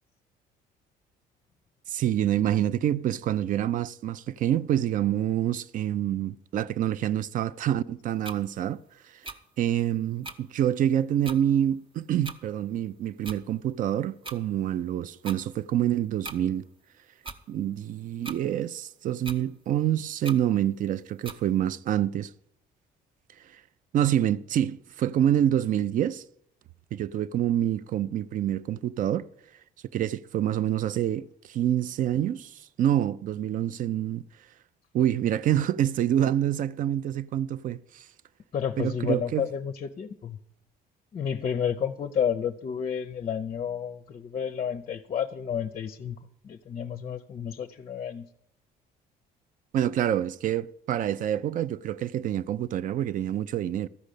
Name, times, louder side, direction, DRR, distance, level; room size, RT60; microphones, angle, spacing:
voice 1, 1.9-8.8 9.6-16.6 17.5-22.3 23.9-26.2 26.9-29.3 29.9-34.2 34.9-38.0 38.8-39.4 49.7-53.9, right 11 dB, 50° right, 0.4 m, -27 dB
sound 1, 8.2-8.4 9.2-9.4 10.2-10.4 11.2-11.4 12.2-12.4 13.2-13.4 14.2-14.4 15.2-15.4 16.2-16.4 17.2-17.4 18.2-18.4 19.2-19.4 20.2-20.4 21.2-21.4, right 3 dB, 30° right, 0.8 m, -39 dB
voice 2, 38.5-40.4 41.1-46.2 46.4-48.3, left 8 dB, 35° left, 0.5 m, -31 dB
13.5 x 5.1 x 8.2 m
cardioid pair, 110°, 17 cm